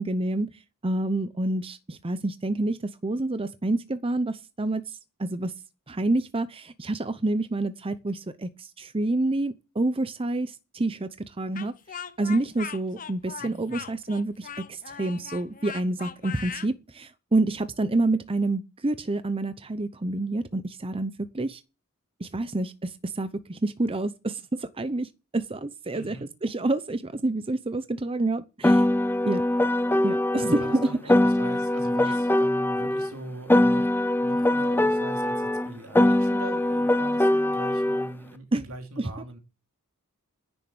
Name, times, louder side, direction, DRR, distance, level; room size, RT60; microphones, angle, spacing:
voice 1, 0.0-5.5 5.9-21.6 22.2-26.2 26.4-28.9 29.2-29.4 30.0-31.0 32.1-32.2 38.5-38.6 39.0-39.1, right 2 dB, 25° right, 0.7 m, -28 dB
Speech, 11.5-16.7, left 7 dB, 40° left, 0.9 m, -39 dB
voice 2, 13.4-13.9 25.9-26.3 30.4-33.9 34.2-39.4, right 2 dB, 70° right, 2.9 m, -41 dB
Piano, 28.6-33.1 33.5-38.1, left 1 dB, 10° left, 0.6 m, -22 dB
10.0 x 7.2 x 8.8 m
head